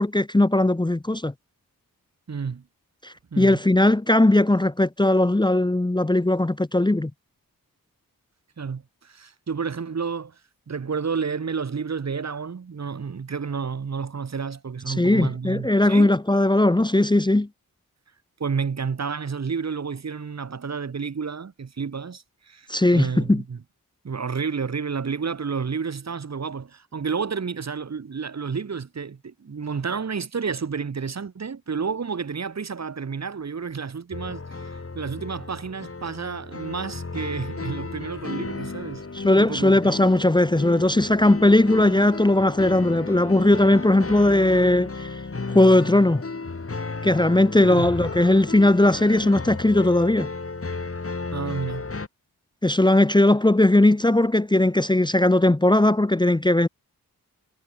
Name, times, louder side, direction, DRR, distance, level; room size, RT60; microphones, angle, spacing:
voice 1, 0.0-1.3 3.0-7.1 14.9-17.5 22.7-23.4 39.1-45.1 45.5-46.2 47.0-50.3 52.6-56.7, left 1 dB, 10° left, 0.9 m, -19 dB
voice 2, 2.3-2.6 3.3-3.6 8.6-10.3 10.7-16.2 18.4-23.6 24.0-39.0 39.4-39.9 47.6-47.9 51.3-51.8, right 5 dB, 45° right, 1.3 m, -30 dB
sound 1, 34.1-52.1, left 3 dB, 40° left, 4.6 m, -34 dB
wide cardioid pair, 85°, 36 cm